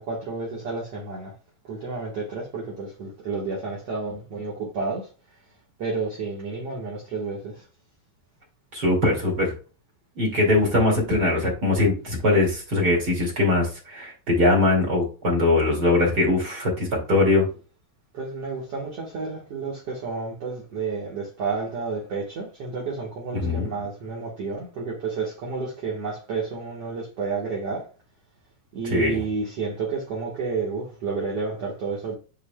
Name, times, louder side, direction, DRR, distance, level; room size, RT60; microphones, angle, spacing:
voice 1, 0.0-1.3 1.6-5.1 5.8-7.6 18.1-27.9 28.7-32.1, right 4 dB, 55° right, 2.0 m, -31 dB
voice 2, 8.7-9.5 10.2-17.5 23.3-23.7 28.8-29.2, left 2 dB, 30° right, 2.2 m, -21 dB
10.0 x 4.6 x 2.3 m
omnidirectional pair, 4.3 m